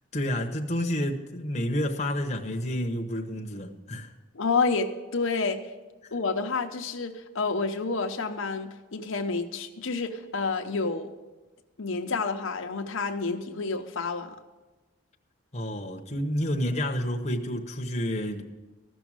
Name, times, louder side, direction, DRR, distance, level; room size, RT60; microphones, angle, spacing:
voice 1, 0.1-4.1 6.0-6.1 15.5-18.4, equal, 30° left, 3 dB, 0.9 m, -29 dB
voice 2, 4.3-5.6 6.1-11.1 11.8-14.4, left 4 dB, 70° left, 4 dB, 0.8 m, -29 dB
14.5 x 6.2 x 8.8 m, 1.2 s
head